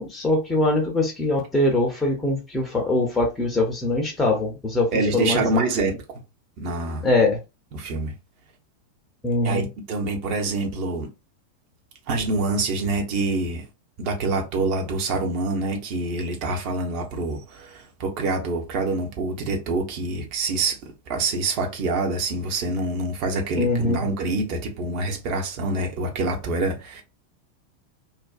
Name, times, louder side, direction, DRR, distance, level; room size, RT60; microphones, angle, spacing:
voice 1, 0.0-5.6 7.0-7.4 9.2-9.7 23.6-24.0, left 2 dB, 10° left, 0.6 m, -22 dB
voice 2, 4.9-5.9 6.6-7.0 7.7-8.1 9.4-11.1 12.1-13.6 14.0-20.8 21.1-27.0, right 2 dB, 45° right, 0.7 m, -26 dB
2.5 x 2.1 x 2.3 m
figure-of-eight pair, 90°, 0 cm